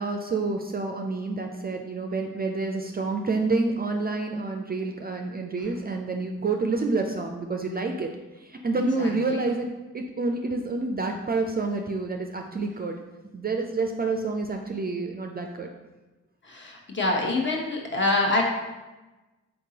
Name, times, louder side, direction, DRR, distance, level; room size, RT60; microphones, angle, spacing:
voice 1, 0.0-8.1 8.4-9.7 9.9-13.0 13.3-15.7, right 3 dB, 30° right, 3 dB, 0.4 m, -28 dB
voice 2, 9.0-9.4 16.4-18.4, left 2 dB, 35° left, -1 dB, 1.1 m, -26 dB
3.9 x 3.6 x 2.8 m, 1.1 s
supercardioid pair, 45°, 32 cm